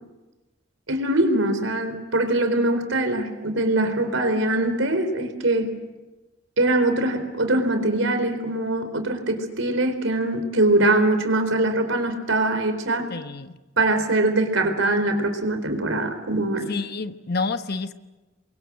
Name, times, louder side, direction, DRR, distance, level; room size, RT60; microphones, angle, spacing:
voice 1, 0.9-5.7 6.6-13.1 13.8-16.7, right 2 dB, 90° right, 7 dB, 4.3 m, -22 dB
voice 2, 13.1-13.5 16.7-17.9, left 3 dB, 55° left, 9 dB, 1.3 m, -28 dB
29.0 x 23.5 x 7.8 m, 1.1 s
head